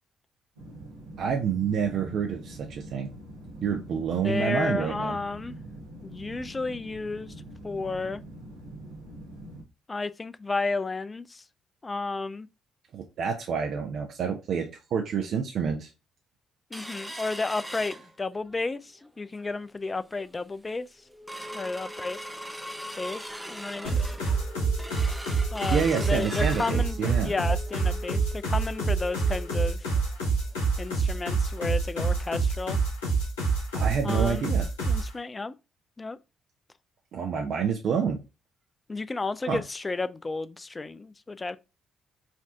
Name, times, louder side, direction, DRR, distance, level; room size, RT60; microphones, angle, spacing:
sound 1, 0.6-9.6, right 1 dB, 90° right, 1.1 m, -44 dB
voice 1, 1.2-3.1 3.6-5.2 12.9-15.9 25.7-27.3 33.7-34.7 37.1-38.2 39.5-39.6, right 6 dB, 60° right, 0.7 m, -28 dB
voice 2, 4.2-5.5 6.0-7.3 7.6-8.2 9.9-11.4 11.8-12.5 16.7-20.9 21.5-22.2 22.9-24.0 25.5-29.9 30.8-32.8 34.0-34.4 34.9-35.5 36.0-36.2 38.9-41.6, left 3 dB, 30° left, 0.4 m, -32 dB
sound 2, 16.7-18.6 19.0-19.1 19.4-19.8 20.3-20.4 20.7-31.2 31.6-31.7 32.0-32.2 32.7-32.8, equal, 5° right, 0.7 m, -41 dB
sound 3, 23.8-35.1, right 4 dB, 85° left, 1.3 m, -27 dB
5.1 x 2.7 x 3.6 m
hypercardioid pair, 45°, 0 cm